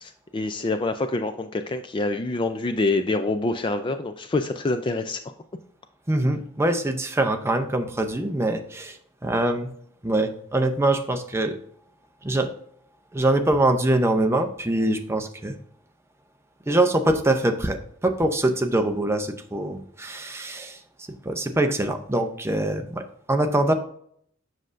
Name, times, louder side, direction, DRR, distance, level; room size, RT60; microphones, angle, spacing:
voice 1, 0.0-5.2, left 2 dB, 25° left, 8 dB, 0.4 m, -26 dB
voice 2, 6.1-9.0 9.2-9.7 10.0-11.6 12.2-12.5 13.1-15.6 16.7-20.8 21.2-23.0 23.3-23.7, right 1 dB, 15° right, 6 dB, 0.6 m, -23 dB
7.6 x 6.3 x 2.5 m, 0.65 s
head